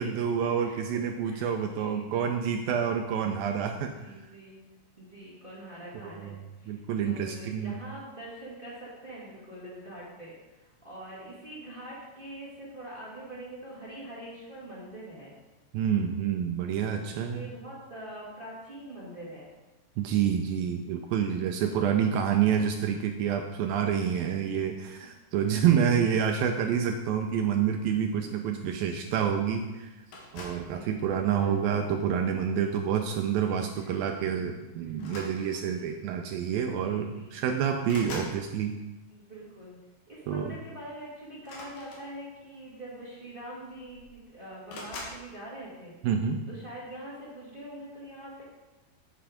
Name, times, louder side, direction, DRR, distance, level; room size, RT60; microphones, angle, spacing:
voice 1, 0.0-4.0 6.0-6.4 6.7-7.8 15.7-17.5 20.0-29.9 30.3-38.8 40.3-40.6 46.0-46.4, right 8 dB, 85° right, 5 dB, 2.1 m, -28 dB
voice 2, 1.2-2.4 3.9-4.6 5.0-6.3 6.6-15.3 17.1-19.4 24.1-24.3 25.0-25.1 25.4-26.1 30.4-31.6 33.7-34.4 35.1-35.2 35.7-35.9 36.5-37.4 39.1-39.8 40.1-45.9 46.5-48.4, right 1 dB, 20° right, -6 dB, 1.4 m, -44 dB
sound 1, 30.1-30.7 31.6-31.9 33.4-33.6 33.9-34.1 34.9-35.8 36.8-36.9 37.2-38.4 41.4-42.5 43.4-43.5 43.7-44.2 44.7-45.2, left 2 dB, 60° left, 3.0 m, -43 dB
8.2 x 8.0 x 5.1 m, 1.1 s
omnidirectional pair, 4.8 m